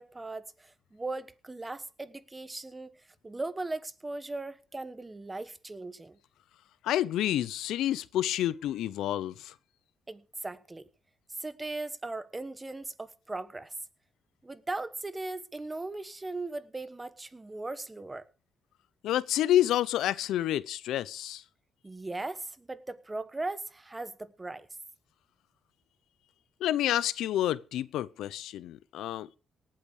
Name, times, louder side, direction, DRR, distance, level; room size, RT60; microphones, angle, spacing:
voice 1, 0.0-6.2 10.1-10.9 11.4-13.7 14.4-18.3 21.8-24.7, right 2 dB, 20° right, 1.2 m, -38 dB
voice 2, 6.8-9.5 19.0-21.4 26.6-29.3, left 12 dB, 85° left, 0.7 m, -29 dB
18.5 x 8.7 x 5.0 m
cardioid pair, 90°, 0 cm